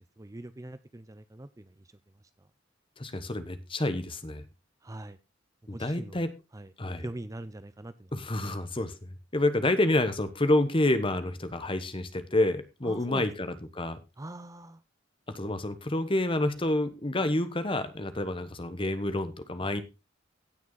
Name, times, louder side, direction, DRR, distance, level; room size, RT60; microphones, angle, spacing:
voice 1, 0.2-1.8 2.4-2.5 4.8-5.2 5.7-6.3 6.5-6.7 7.0-8.1 8.6-8.7 12.8-13.3 14.2-14.8, right 1 dB, 15° right, 13 dB, 0.5 m, -42 dB
voice 2, 3.0-4.4 5.7-6.3 6.8-7.1 8.1-13.5 13.7-14.0 15.3-19.8, left 1 dB, 25° left, 11 dB, 1.2 m, -28 dB
16.5 x 6.1 x 4.0 m, 0.26 s
head